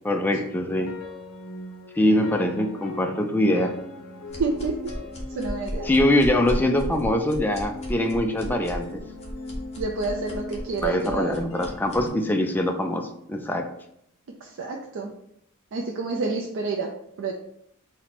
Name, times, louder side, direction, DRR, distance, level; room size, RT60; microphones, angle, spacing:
voice 1, 0.0-0.9 2.0-3.8 5.8-9.1 10.8-13.7, left 1 dB, 10° left, 4 dB, 0.3 m, -23 dB
sound 1, 0.5-12.8, left 2 dB, 65° left, 0.7 m, -39 dB
sound 2, 4.3-12.1, equal, 30° left, 0.9 m, -35 dB
voice 2, 4.4-4.8 5.4-5.9 9.8-11.4 14.4-15.1 15.7-16.9 17.2-17.3, right 4 dB, 60° right, 0 dB, 0.4 m, -28 dB
4.3 x 2.1 x 4.1 m, 0.75 s
head